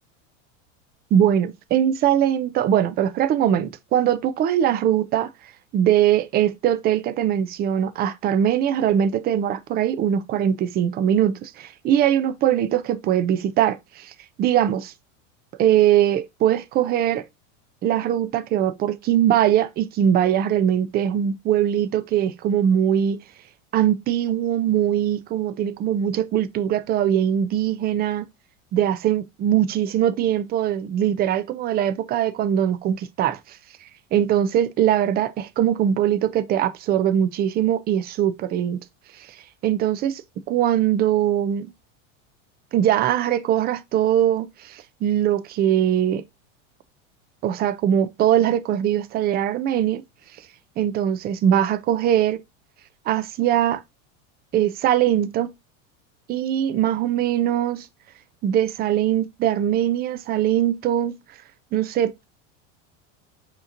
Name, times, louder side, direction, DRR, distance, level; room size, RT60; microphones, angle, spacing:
voice 1, 1.1-5.3 5.7-14.1 14.4-14.9 15.6-17.2 17.8-23.2 23.7-28.3 28.7-33.6 34.1-38.8 39.2-39.3 39.6-40.2 40.5-41.7 42.7-46.2 47.4-50.0 50.8-52.4 53.1-53.8 54.5-55.5 56.3-57.9 58.4-61.2 61.7-62.1, right 10 dB, 25° right, 0.4 m, -21 dB
5.5 x 2.9 x 2.5 m
supercardioid pair, 120°, 37 cm